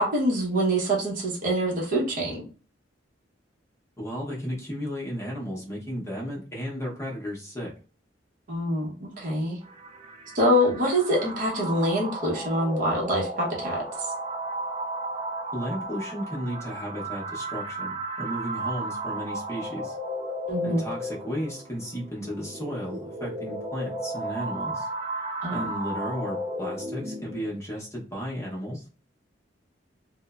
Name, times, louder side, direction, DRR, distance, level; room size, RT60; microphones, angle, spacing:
voice 1, 0.0-2.4 8.5-9.6 10.3-14.1 20.5-20.8 25.4-25.7, equal, 45° right, -2 dB, 0.7 m, -25 dB
voice 2, 4.0-7.7 15.5-20.0 20.6-24.9 25.5-28.9, equal, 15° left, -4 dB, 0.7 m, -34 dB
sound 1, 9.6-27.6, right 1 dB, 30° right, 0.3 m, -34 dB
3.1 x 2.0 x 2.2 m, 0.38 s
head